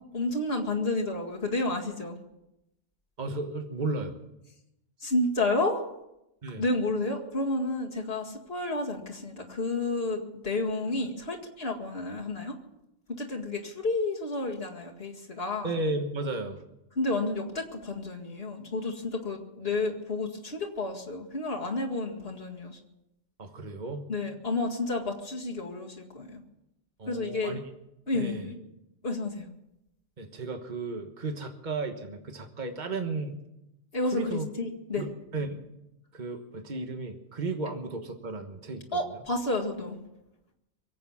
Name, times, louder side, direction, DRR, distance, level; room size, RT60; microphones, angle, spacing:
voice 1, 0.1-2.2 5.0-5.8 6.5-12.6 13.1-15.8 17.0-22.8 24.1-26.4 27.1-27.6 28.1-28.7 29.0-29.4 33.9-35.1 38.9-40.0, left 2 dB, 60° left, -1 dB, 2.3 m, -31 dB
voice 2, 3.2-4.2 6.4-6.6 15.6-16.6 23.4-24.1 27.0-27.6 28.1-28.5 30.2-33.4 34.1-34.5 35.0-35.6 36.1-39.0, right 3 dB, 40° right, 5 dB, 1.5 m, -34 dB
24.0 x 8.5 x 7.2 m, 0.88 s
omnidirectional pair, 1.2 m